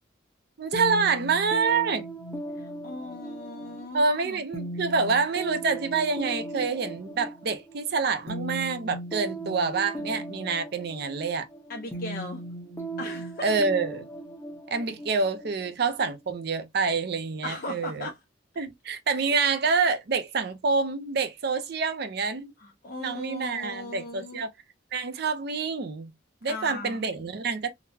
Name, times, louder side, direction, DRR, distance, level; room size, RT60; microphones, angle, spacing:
voice 1, 0.6-2.1 3.9-11.5 13.4-14.1 14.7-18.1 18.6-22.5 23.0-24.5 24.9-26.1 26.4-27.7, right 4 dB, 55° right, 0.5 m, -27 dB
sound 1, 0.7-16.3, right 2 dB, 15° left, 0.8 m, -38 dB
voice 2, 2.5-4.4 11.7-12.4 13.0-13.6 17.4-18.2 22.6-24.4 26.5-27.1, left 2 dB, 50° left, 0.6 m, -38 dB
3.9 x 2.1 x 2.6 m
head